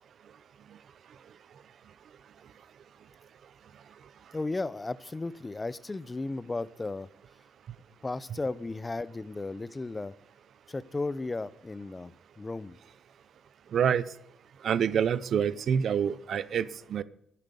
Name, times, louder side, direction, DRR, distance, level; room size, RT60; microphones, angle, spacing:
voice 1, 4.3-7.1 8.0-10.1 10.7-12.8, left 3 dB, 20° left, 18 dB, 0.6 m, -35 dB
voice 2, 13.7-14.0 14.6-17.0, right 8 dB, 60° right, 17 dB, 0.7 m, -27 dB
12.0 x 10.0 x 6.9 m, 0.73 s
cardioid pair, 90°, 0 cm